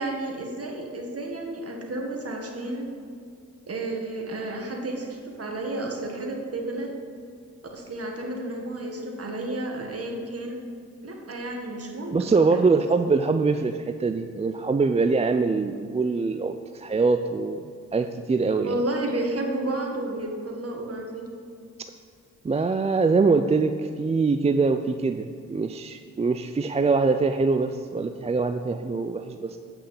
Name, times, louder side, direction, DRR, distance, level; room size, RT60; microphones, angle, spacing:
voice 1, 0.0-2.9 3.7-6.9 7.7-10.6 11.0-12.3 18.6-21.3, right 2 dB, 45° right, 1 dB, 1.8 m, -31 dB
voice 2, 12.1-17.6 17.9-18.8 22.4-29.6, right 4 dB, 20° right, 7 dB, 0.4 m, -23 dB
8.5 x 5.9 x 5.4 m, 2.4 s
cardioid pair, 60°, 32 cm